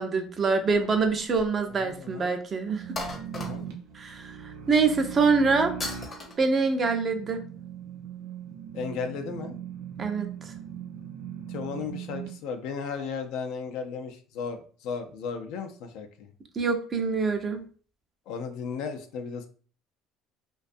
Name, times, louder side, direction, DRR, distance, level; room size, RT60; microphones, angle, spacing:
voice 1, 0.0-2.8 3.9-5.7 6.4-7.4 10.0-10.3 16.6-17.6, right 4 dB, 35° right, 6 dB, 0.5 m, -25 dB
sound 1, 0.7-1.6 1.9-2.0 2.9-3.9 5.8-6.3, left 2 dB, 35° left, 0.7 m, -36 dB
voice 2, 1.7-2.3 3.3-3.6 8.7-9.6 11.5-16.3 18.3-19.5, left 5 dB, 75° left, 7 dB, 0.4 m, -35 dB
sound 2, 2.6-12.3, right 9 dB, 80° right, 0.5 m, -40 dB
2.5 x 2.2 x 2.5 m, 0.42 s
supercardioid pair, 85°, 0 cm